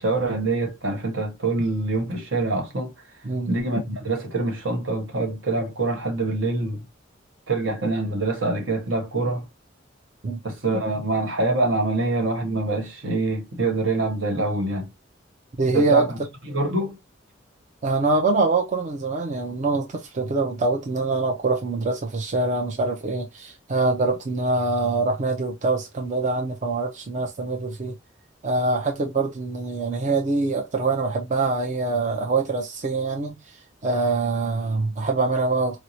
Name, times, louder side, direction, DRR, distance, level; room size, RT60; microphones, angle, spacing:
voice 1, 0.0-2.9 3.5-6.8 7.5-9.4 10.4-14.9 15.7-16.2 16.5-17.0, right 2 dB, 75° right, 1.3 m, -25 dB
voice 2, 15.6-16.1 17.8-27.9 28.4-33.6 33.8-35.8, right 3 dB, 40° right, 0.5 m, -24 dB
4.6 x 2.0 x 2.6 m
head